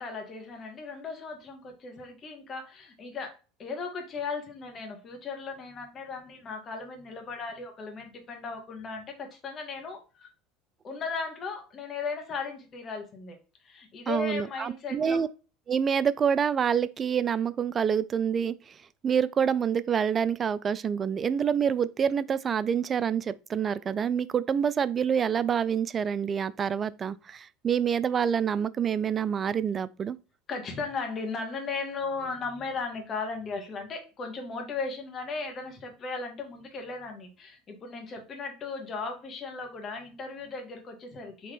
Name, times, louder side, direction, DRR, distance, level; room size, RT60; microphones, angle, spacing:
voice 1, 0.0-3.3 3.6-10.3 10.8-13.4 13.6-15.2 30.5-41.5, left 4 dB, 40° left, 1.4 m, -36 dB
voice 2, 14.1-15.3 15.7-18.8 19.0-30.2, right 7 dB, 35° right, 0.3 m, -27 dB
4.3 x 3.0 x 3.3 m
hypercardioid pair, 85°, 0 cm